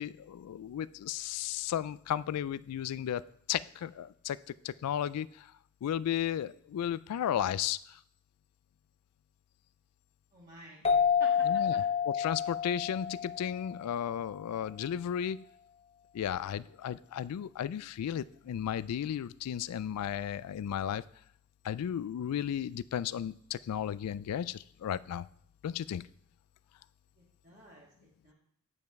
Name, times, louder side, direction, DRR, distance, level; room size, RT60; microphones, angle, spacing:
voice 1, 0.0-3.2 3.5-4.4 4.6-5.5 5.8-8.0 11.4-15.4 16.1-21.0 21.6-25.3 25.6-26.1, left 9 dB, 85° left, 18 dB, 0.3 m, -34 dB
voice 2, 10.3-10.8 11.2-11.8 27.2-28.3, right 1 dB, 35° right, -6 dB, 1.5 m, -52 dB
sound 1, 10.8-14.1, left 7 dB, 25° left, 0.7 m, -29 dB
9.0 x 5.4 x 4.6 m, 0.66 s
head